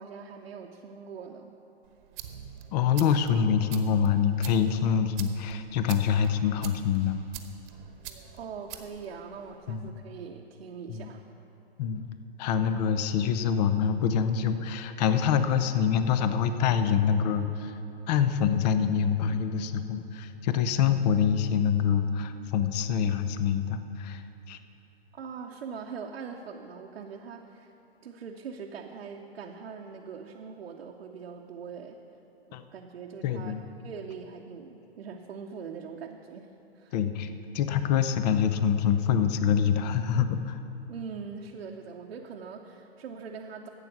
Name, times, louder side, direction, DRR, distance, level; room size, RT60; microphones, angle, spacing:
voice 1, 0.0-1.6 8.3-11.2 25.1-27.7 28.0-32.0 32.5-33.5 33.8-37.0 40.9-43.7, right 6 dB, 75° right, 0 dB, 0.8 m, -42 dB
sound 1, 1.8-9.9, right 10 dB, 45° right, 1.0 m, -46 dB
voice 2, 2.7-7.2 9.7-9.9 10.9-11.1 11.8-12.0 12.4-17.7 18.1-24.6 32.5-32.6 33.2-33.6 36.9-37.3 37.5-40.6, left 7 dB, 40° left, 10 dB, 0.7 m, -25 dB
12.0 x 8.2 x 6.0 m, 3.0 s
hypercardioid pair, 130°, 32 cm